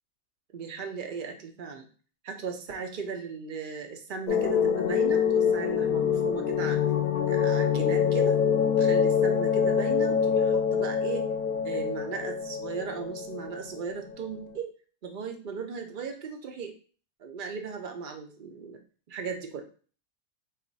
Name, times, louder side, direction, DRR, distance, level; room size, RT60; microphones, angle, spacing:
voice 1, 0.5-1.9 2.2-6.8 7.3-8.4 8.8-11.3 11.6-14.7 15.0-16.7 17.2-18.8 19.1-19.6, right 5 dB, 60° right, 4 dB, 0.5 m, -37 dB
sound 1, 4.3-14.4, left 7 dB, 75° left, 0.9 m, -25 dB
4.2 x 2.4 x 3.9 m, 0.40 s
omnidirectional pair, 1.5 m